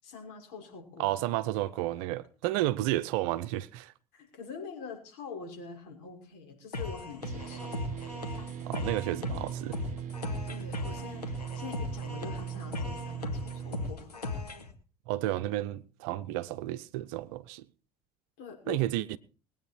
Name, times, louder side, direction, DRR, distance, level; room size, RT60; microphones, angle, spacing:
voice 1, 0.0-1.1 4.1-7.7 10.4-14.2 18.4-18.8, left 5 dB, 55° left, 6.0 m, -44 dB
voice 2, 1.0-3.9 8.6-9.8 15.1-17.7 18.7-19.2, right 15 dB, 60° right, 0.8 m, -31 dB
sound 1, 6.7-14.7, left 3 dB, 90° left, 1.9 m, -38 dB
sound 2, 7.2-13.9, right 9 dB, 40° right, 1.2 m, -39 dB
21.5 x 9.2 x 4.5 m
figure-of-eight pair, 70°, 20 cm